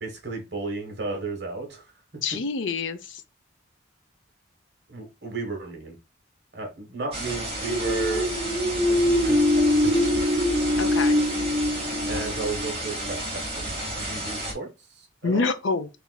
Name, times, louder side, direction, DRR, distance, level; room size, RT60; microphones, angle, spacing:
voice 1, 0.0-1.8 4.9-5.9 6.5-8.3 8.9-9.9 12.1-13.6 14.0-14.7 15.0-15.5, right 3 dB, 55° right, 1.4 m, -33 dB
voice 2, 2.2-3.2 10.8-11.2 15.2-15.9, left 4 dB, 75° left, 0.6 m, -27 dB
sound 1, 7.1-14.5, right 1 dB, 30° right, 1.8 m, -32 dB
sound 2, 7.5-13.2, left 1 dB, 75° right, 1.1 m, -23 dB
6.9 x 2.5 x 2.3 m
head